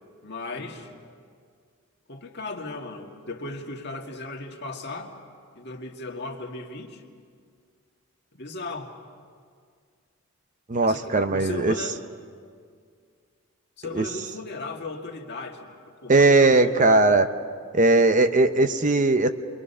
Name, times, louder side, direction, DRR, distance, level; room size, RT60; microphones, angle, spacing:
voice 1, 0.2-0.9 2.1-5.2 5.6-7.0 8.3-8.9 10.8-12.1 13.8-15.7 16.0-17.1, left 2 dB, 50° left, 1 dB, 1.9 m, -36 dB
voice 2, 10.7-11.7 13.9-14.0 16.1-17.3 17.7-19.3, right 2 dB, 35° right, 9 dB, 0.7 m, -19 dB
29.5 x 23.0 x 5.6 m, 2.1 s
head